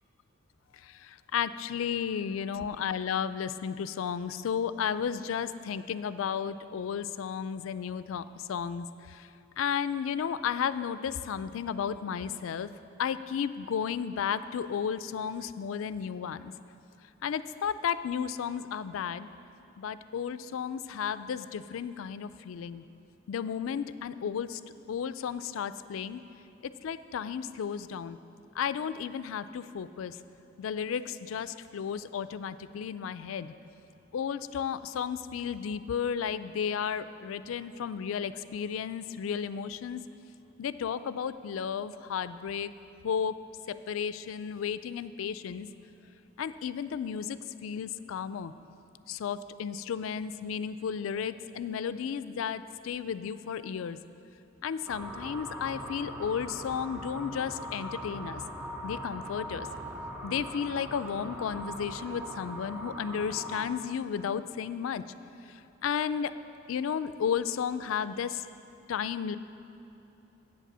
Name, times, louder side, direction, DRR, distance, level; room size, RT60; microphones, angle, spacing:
voice 1, 0.8-9.3 9.6-12.7 13.0-16.5 17.2-19.3 19.8-22.8 23.3-24.6 24.9-26.2 26.6-28.2 28.6-30.2 30.6-33.5 34.1-40.0 40.6-42.7 43.0-43.4 43.7-45.7 46.4-48.5 49.1-54.0 54.6-58.4 58.8-59.7 60.2-65.0 65.8-66.3 66.7-68.5 68.9-69.4, left 7 dB, 85° left, 14 dB, 0.3 m, -33 dB
sound 1, 54.9-63.7, equal, 10° right, 1.1 m, -40 dB
8.2 x 7.5 x 6.7 m, 3.0 s
head